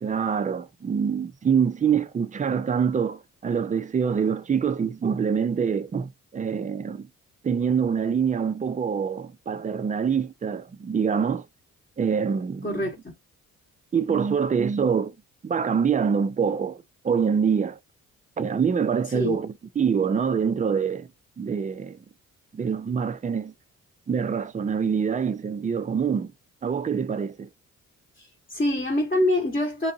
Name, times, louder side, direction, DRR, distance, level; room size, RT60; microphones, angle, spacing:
voice 1, 0.0-7.1 7.4-11.5 12.0-12.8 13.9-15.1 15.4-17.8 18.4-21.1 21.4-22.0 22.5-23.5 24.1-26.3 26.6-27.5, right 6 dB, 20° right, 0.4 m, -25 dB
voice 2, 12.6-13.1 19.1-19.4 28.2-29.9, left 1 dB, 20° left, 1.0 m, -25 dB
2.6 x 2.3 x 2.5 m
hypercardioid pair, 40°, 40 cm